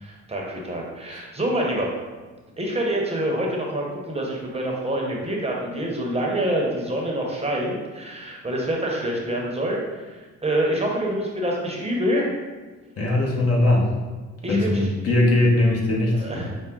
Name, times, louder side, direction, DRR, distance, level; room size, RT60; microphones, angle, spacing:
voice 1, 0.0-1.9 2.6-12.3 14.4-14.9 16.1-16.5, right 1 dB, 20° right, -2 dB, 0.8 m, -26 dB
voice 2, 13.0-13.9 14.5-16.5, left 1 dB, 50° left, -2 dB, 1.1 m, -20 dB
5.7 x 2.1 x 3.6 m, 1.4 s
cardioid pair, 90°, 30 cm